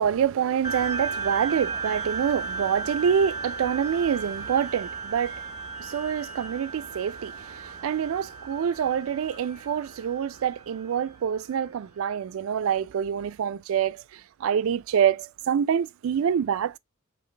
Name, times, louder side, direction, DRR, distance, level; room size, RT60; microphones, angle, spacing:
voice 1, 0.0-14.0 14.4-16.8, right 8 dB, 70° right, 0.3 m, -26 dB
sound 1, 0.6-11.5, right 4 dB, 15° right, 1.4 m, -35 dB
5.0 x 2.9 x 3.1 m
head